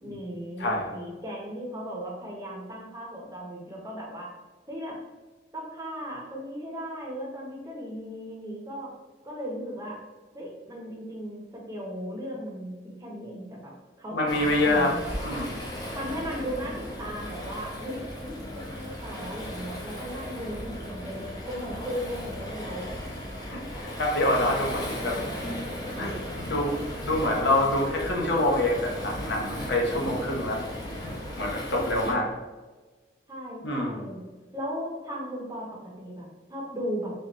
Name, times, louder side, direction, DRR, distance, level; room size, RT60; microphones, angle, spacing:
voice 1, 0.0-4.3 4.7-5.0 5.5-8.9 9.2-10.0 10.3-13.7 14.0-15.0 15.9-22.8 31.7-32.2 33.3-34.2 34.5-37.1, equal, 20° right, -3 dB, 0.9 m, -37 dB
voice 2, 14.1-14.9 15.2-15.6 23.4-25.2 26.0-26.2 26.4-30.6 31.4-32.3 33.6-34.0, left 1 dB, 80° left, -1 dB, 0.8 m, -26 dB
Waves surf, 14.3-32.1, equal, 20° left, 0.7 m, -36 dB
4.1 x 2.5 x 3.0 m, 1.3 s
head